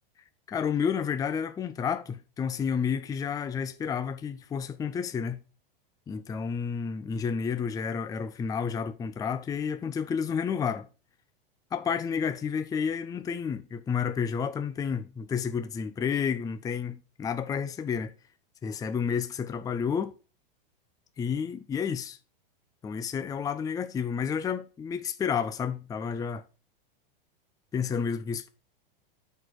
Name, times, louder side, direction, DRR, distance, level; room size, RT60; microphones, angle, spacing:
voice 1, 0.5-5.4 6.1-10.9 11.7-18.1 18.6-20.1 21.2-22.2 22.8-26.4 27.7-28.5, left 6 dB, 10° left, 0.6 m, -30 dB
8.8 x 4.5 x 4.8 m
hypercardioid pair, 125°, 29 cm